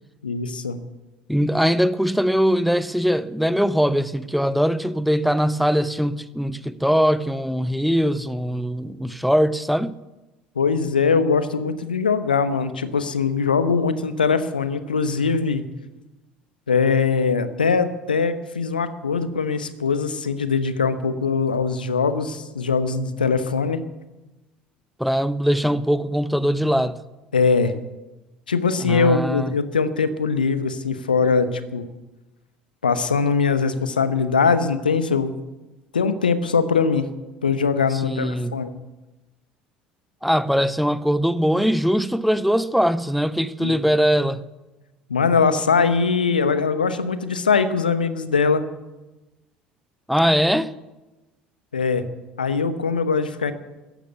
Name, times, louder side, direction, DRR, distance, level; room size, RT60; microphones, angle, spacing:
voice 1, 0.2-0.8 10.6-15.6 16.7-23.8 27.3-27.7 28.5-31.9 32.8-35.3 35.9-37.1 37.4-38.7 43.6-43.7 45.1-48.6 51.7-52.0 52.4-53.5, left 5 dB, 80° left, 1.0 m, -21 dB
voice 2, 1.3-9.9 25.0-27.0 28.8-29.6 37.9-38.6 40.2-44.4 50.1-50.7, equal, ahead, 0.8 m, -21 dB
14.5 x 11.5 x 8.1 m
figure-of-eight pair, 60°, 5 cm